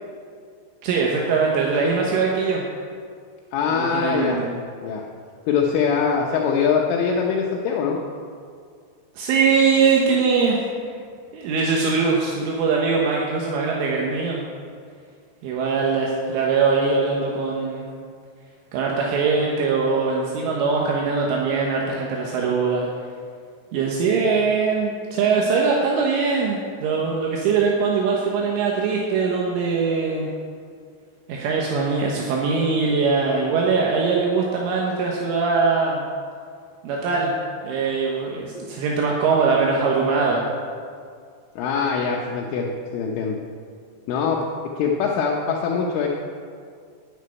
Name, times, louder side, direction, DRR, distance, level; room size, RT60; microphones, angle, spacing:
voice 1, 0.8-2.6 3.7-4.5 9.2-10.6 11.3-14.5 15.4-17.9 18.7-22.9 23.7-30.3 31.3-36.0 36.8-37.3 37.6-40.4, right 4 dB, 75° right, -2 dB, 3.6 m, -21 dB
voice 2, 3.5-4.4 4.8-5.0 5.5-8.0 41.6-43.4 44.1-44.4 44.8-46.1, left 6 dB, 75° left, -2 dB, 3.3 m, -23 dB
11.0 x 8.7 x 9.5 m, 2.2 s
omnidirectional pair, 6.0 m